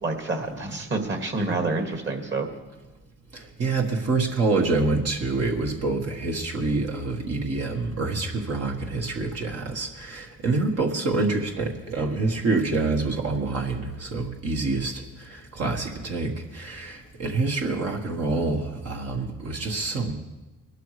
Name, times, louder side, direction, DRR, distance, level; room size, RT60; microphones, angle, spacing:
voice 1, 0.0-2.5, right 3 dB, 40° right, 4 dB, 2.3 m, -28 dB
voice 2, 3.3-20.1, right 3 dB, 55° right, 1 dB, 1.6 m, -27 dB
21.5 x 11.5 x 3.3 m, 1.1 s
cardioid pair, 90°, 30 cm